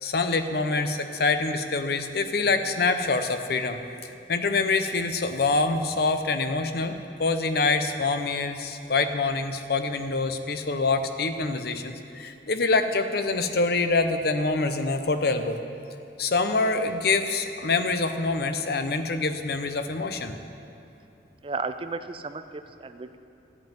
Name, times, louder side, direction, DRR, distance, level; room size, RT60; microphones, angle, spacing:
voice 1, 0.0-3.8 4.3-15.6 16.2-20.4, left 3 dB, 55° left, 8 dB, 0.7 m, -25 dB
voice 2, 21.4-23.2, right 4 dB, 30° right, 10 dB, 0.4 m, -34 dB
13.5 x 5.4 x 9.0 m, 2.8 s
head